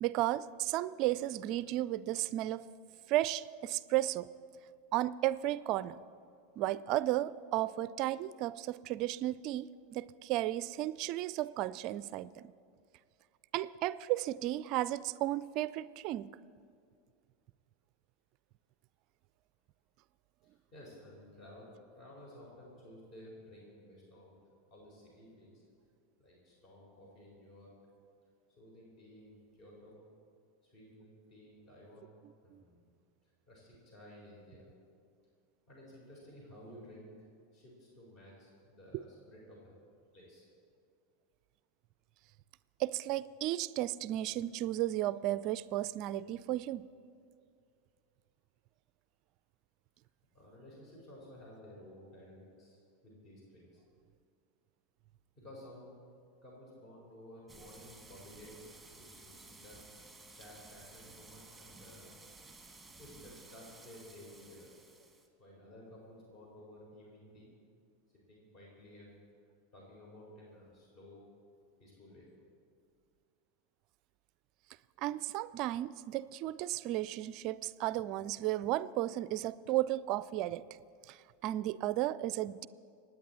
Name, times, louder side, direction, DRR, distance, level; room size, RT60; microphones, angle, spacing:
voice 1, 0.0-2.6 3.1-4.3 4.9-6.0 6.6-12.5 13.5-16.3 32.5-32.6 42.8-46.9 75.0-80.6 81.1-81.2 81.4-82.7, right 15 dB, 45° right, 18 dB, 0.4 m, -34 dB
voice 2, 20.4-21.7 21.9-24.4 24.7-25.6 26.2-27.7 28.5-30.0 30.6-32.9 33.2-34.7 35.7-37.1 37.5-39.7 40.1-40.5 50.3-53.8 55.3-56.0 56.4-59.8 60.3-62.2 63.0-64.7 65.4-67.5 68.3-69.2 69.7-71.2 71.8-72.3, left 1 dB, 40° left, -3 dB, 4.2 m, -54 dB
sound 1, 57.5-65.3, right 3 dB, 5° right, 1.7 m, -55 dB
25.5 x 9.6 x 4.3 m, 2.3 s
figure-of-eight pair, 85°, 0 cm